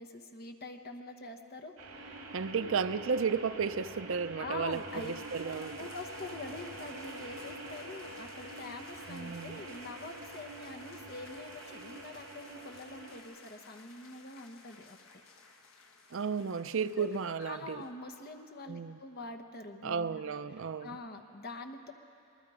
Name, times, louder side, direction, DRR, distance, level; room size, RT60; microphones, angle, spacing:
voice 1, 0.0-2.3 2.5-2.7 4.4-5.1 5.8-15.0 17.0-17.1 17.4-20.3 20.8-21.9, left 2 dB, 45° left, 5 dB, 1.2 m, -45 dB
sound 1, 1.8-13.2, right 2 dB, 80° right, 2.4 m, -46 dB
voice 2, 2.3-5.8 9.1-9.6 16.1-17.8 18.7-19.0 19.8-21.0, right 5 dB, 60° right, 12 dB, 0.5 m, -33 dB
sound 2, 4.7-17.9, left 3 dB, 65° left, 1.4 m, -55 dB
27.0 x 19.5 x 5.0 m, 2.6 s
head